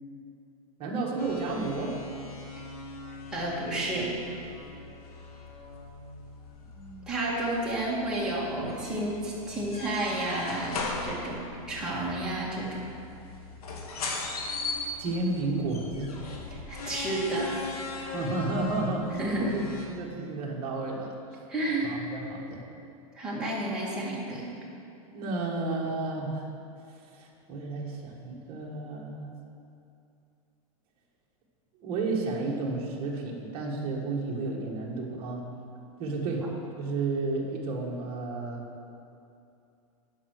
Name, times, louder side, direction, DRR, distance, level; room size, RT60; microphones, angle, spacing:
voice 1, 0.8-2.0 6.7-7.1 15.0-16.2 18.1-19.6 19.9-21.2 21.8-22.6 25.1-26.5 26.9-29.3 31.8-35.4 36.0-36.5 36.8-38.6, right 3 dB, 30° right, -2 dB, 1.5 m, -32 dB
sound 1, 1.2-19.9, left 3 dB, 80° left, 1.7 m, -39 dB
voice 2, 3.3-4.1 7.1-11.4 11.7-12.8 16.5-18.1 19.2-19.5 21.5-21.9 23.2-24.4, right 1 dB, 5° right, -7 dB, 1.8 m, -31 dB
11.0 x 5.5 x 6.5 m, 2.6 s
supercardioid pair, 160°, 19 cm